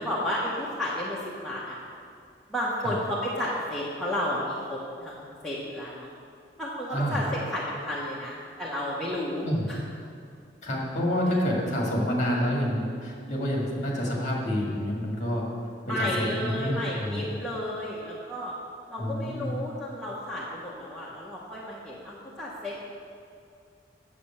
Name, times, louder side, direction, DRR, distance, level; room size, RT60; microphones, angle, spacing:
voice 1, 0.0-1.8 2.5-6.1 6.6-9.8 15.8-18.6 18.9-22.9, left 1 dB, ahead, -8 dB, 1.0 m, -32 dB
voice 2, 6.9-7.2 9.4-9.7 10.6-15.5 15.9-17.2 19.0-19.5, equal, 40° left, -3 dB, 2.0 m, -28 dB
8.5 x 7.3 x 5.6 m, 2.4 s
head